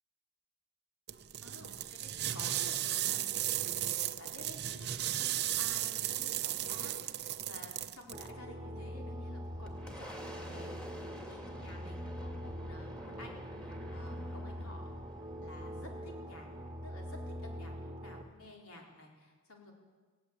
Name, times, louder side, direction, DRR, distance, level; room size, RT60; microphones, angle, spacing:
sound 1, 1.1-8.3, right 12 dB, 50° right, 0.7 m, -35 dB
voice 1, 1.4-14.9 15.4-16.5 16.8-19.7, left 1 dB, 75° left, 1 dB, 4.4 m, -52 dB
sound 2, 8.1-18.2, equal, 15° right, 1.4 m, -43 dB
Boom, 9.0-18.4, equal, 5° left, 2.6 m, -50 dB
19.0 x 17.0 x 8.4 m, 1.4 s
head